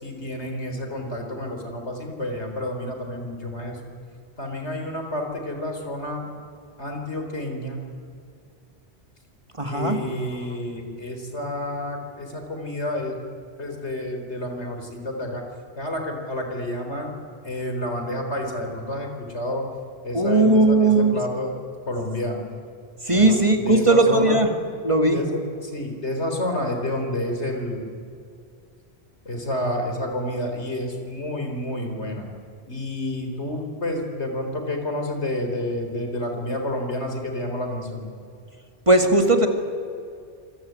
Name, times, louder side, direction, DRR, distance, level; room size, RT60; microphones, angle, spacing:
voice 1, 0.0-3.8 4.4-6.3 6.8-7.8 9.7-13.2 13.6-15.4 15.8-17.1 17.4-19.7 20.0-21.5 21.9-22.4 23.1-23.4 23.6-24.4 25.1-27.9 29.2-32.3 32.7-38.1, left 1 dB, 80° left, 3 dB, 4.3 m, -29 dB
voice 2, 9.6-10.0 20.1-21.2 23.0-24.5 24.8-25.2 38.9-39.5, right 2 dB, 30° right, 5 dB, 2.2 m, -18 dB
26.5 x 22.0 x 9.5 m, 2.4 s
omnidirectional pair, 1.1 m